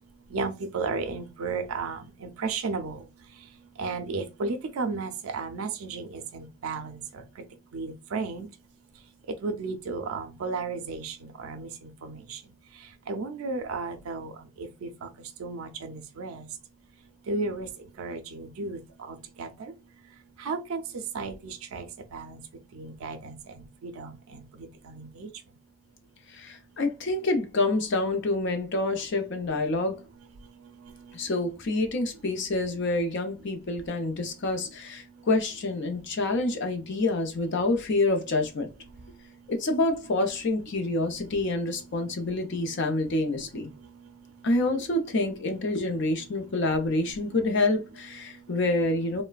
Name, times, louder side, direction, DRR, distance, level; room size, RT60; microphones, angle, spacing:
voice 1, 0.3-3.0 3.8-7.2 7.7-8.5 9.4-12.4 13.1-14.3 14.6-15.1 15.4-16.5 17.3-17.7 18.0-18.8 19.1-19.7 20.4-20.8 21.1-21.9 22.1-22.4 22.7-25.3, right 4 dB, 85° right, 0.4 m, -34 dB
voice 2, 26.3-30.0 31.1-38.7 39.5-43.7 44.4-49.2, left 2 dB, 55° left, 0.6 m, -27 dB
3.1 x 2.1 x 2.3 m
head